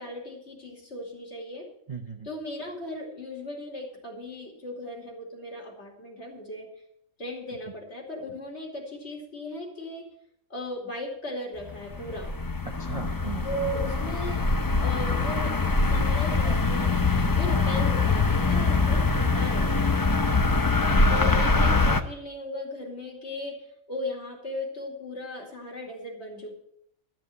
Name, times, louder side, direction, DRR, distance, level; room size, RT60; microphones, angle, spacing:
voice 1, 0.0-1.7 2.2-6.7 7.2-10.1 10.5-12.4 13.4-14.5 14.8-15.6 15.8-17.0 17.4-20.0 20.8-26.5, left 1 dB, 50° left, 0 dB, 2.9 m, -37 dB
voice 2, 1.9-2.3 12.7-13.5 17.2-17.4 20.9-21.3, right 5 dB, 30° right, 4 dB, 0.7 m, -37 dB
sound 1, 11.7-22.0, left 3 dB, 25° left, 0.5 m, -23 dB
12.5 x 7.5 x 7.7 m, 0.73 s
omnidirectional pair, 1.4 m